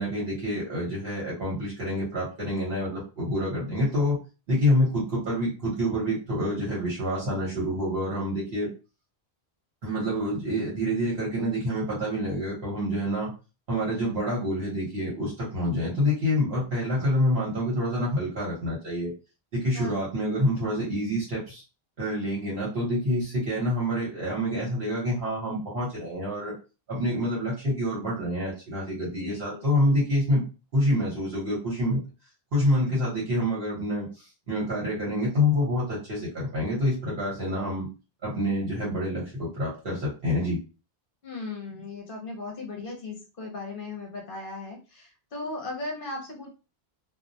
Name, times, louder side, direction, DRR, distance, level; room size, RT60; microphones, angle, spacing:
voice 1, 0.0-4.2 4.5-8.7 9.8-13.3 13.7-19.1 19.5-21.6 22.0-26.5 26.9-30.4 30.7-32.0 32.5-37.9 38.2-40.6, left 1 dB, 70° right, -7 dB, 1.1 m, -27 dB
voice 2, 19.7-20.0 29.2-29.7 41.2-46.5, left 3 dB, 60° left, -1 dB, 0.8 m, -37 dB
2.3 x 2.0 x 2.6 m, 0.33 s
omnidirectional pair, 1.1 m